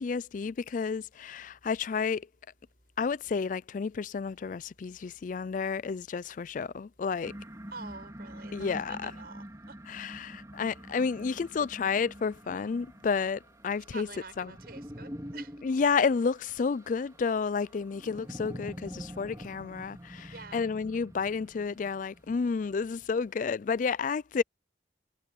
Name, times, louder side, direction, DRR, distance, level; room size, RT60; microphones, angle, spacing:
voice 1, 0.0-2.3 3.0-7.3 8.5-9.1 9.9-14.1 14.4-14.5 15.6-24.4, left 5 dB, 45° left, 0.3 m, -31 dB
sound 1, 7.2-22.7, equal, 20° right, 4.2 m, -46 dB
voice 2, 7.7-9.8 13.7-15.5 20.2-20.7, right 4 dB, 55° right, 7.5 m, -47 dB
head